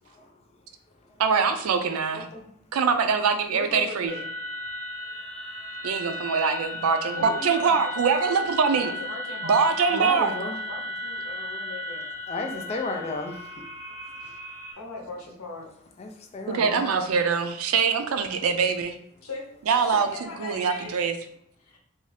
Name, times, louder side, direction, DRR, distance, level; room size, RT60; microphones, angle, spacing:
voice 1, 1.2-2.2 2.7-4.1 5.8-8.9 9.4-10.3 16.5-18.9 19.7-20.1 20.4-21.1, right 5 dB, 90° right, 0.4 m, -23 dB
voice 2, 2.1-2.4 3.5-4.2 7.2-8.3 8.8-12.1 14.8-15.7 19.2-19.5 19.8-20.9 21.6-21.8, left 2 dB, 90° left, 0.8 m, -38 dB
sound 1, 4.1-14.7, left 1 dB, 50° right, 1.2 m, -35 dB
voice 3, 9.9-10.6 12.3-13.7 14.2-14.3 16.0-16.9, left 2 dB, 30° left, 0.3 m, -33 dB
2.6 x 2.3 x 3.2 m
head